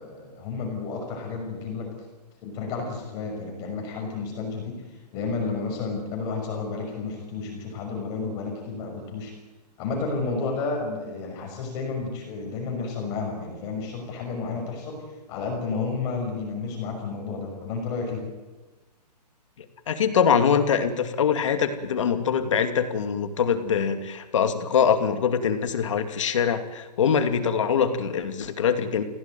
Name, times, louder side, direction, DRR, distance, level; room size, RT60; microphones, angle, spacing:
voice 1, 0.0-1.9 2.4-4.8 5.1-9.3 9.8-15.0 15.3-18.3, left 4 dB, 15° left, 1 dB, 6.1 m, -31 dB
voice 2, 19.9-29.0, left 7 dB, 45° left, 8 dB, 2.6 m, -23 dB
27.5 x 17.0 x 9.2 m, 1.2 s
hypercardioid pair, 180°, 21 cm